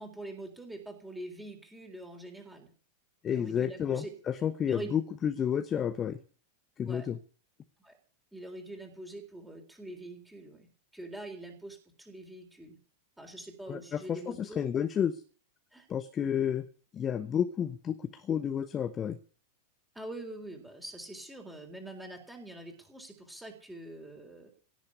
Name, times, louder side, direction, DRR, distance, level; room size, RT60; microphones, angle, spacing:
voice 1, 0.0-2.7 3.2-4.1 4.7-5.0 6.9-7.1 7.8-8.0 8.3-12.8 13.2-14.6 15.7-15.9 19.9-24.5, right 1 dB, 5° right, 2 dB, 3.9 m, -44 dB
voice 2, 3.2-6.2 6.8-7.2 13.7-15.2 15.9-16.7 16.9-19.2, left 8 dB, 25° left, 10 dB, 1.1 m, -31 dB
17.0 x 7.4 x 9.7 m, 0.41 s
figure-of-eight pair, 90°, 0 cm